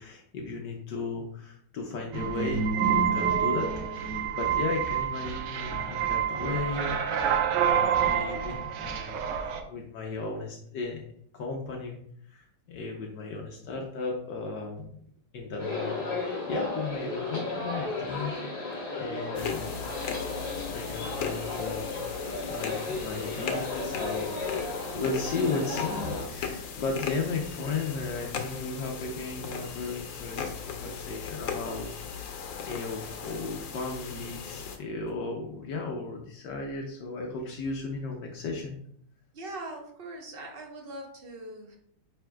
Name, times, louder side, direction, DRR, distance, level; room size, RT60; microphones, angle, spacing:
voice 1, 0.0-7.2 7.5-11.0 11.3-12.0 12.2-14.9 15.3-18.7 19.0-19.7 20.7-22.2 22.5-32.3 32.7-38.8, left 3 dB, 70° left, 1 dB, 1.4 m, -35 dB
sound 1, 2.1-9.6, right 7 dB, 75° right, 1.3 m, -27 dB
sound 2, 15.6-26.2, left 3 dB, 45° left, 2.5 m, -34 dB
sound 3, 19.4-34.8, left 6 dB, 85° left, 1.5 m, -38 dB
voice 2, 39.3-41.8, right 2 dB, 35° right, 1 dB, 1.1 m, -41 dB
9.3 x 4.3 x 2.3 m, 0.65 s
omnidirectional pair, 2.0 m